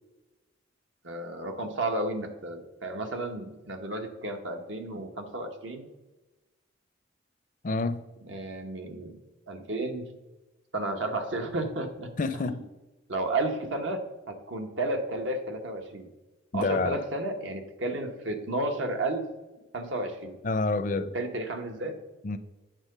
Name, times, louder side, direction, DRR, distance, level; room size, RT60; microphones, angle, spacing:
voice 1, 1.0-5.9 8.2-9.2 9.5-10.1 10.7-12.6 13.1-16.1 16.5-19.3 19.7-20.4 21.1-22.0, right 2 dB, 75° right, 1.1 m, -32 dB
voice 2, 7.6-8.0 12.2-12.6 16.5-17.0 20.4-21.1 22.2-22.4, left 3 dB, 40° left, 0.4 m, -28 dB
9.0 x 3.8 x 6.6 m
head